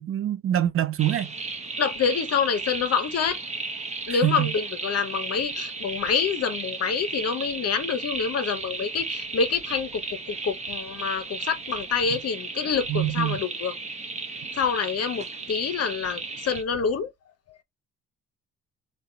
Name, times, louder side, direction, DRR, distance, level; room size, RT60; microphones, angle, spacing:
voice 1, 0.0-1.3 4.1-4.5 12.9-13.4, right 12 dB, 45° right, 0.5 m, -25 dB
sound 1, 1.0-16.6, right 3 dB, 20° right, 0.8 m, -34 dB
voice 2, 1.8-3.4 4.1-13.7 14.5-17.1, left 6 dB, 55° left, 0.7 m, -27 dB
2.8 x 2.2 x 3.7 m
cardioid pair, 90°, 30 cm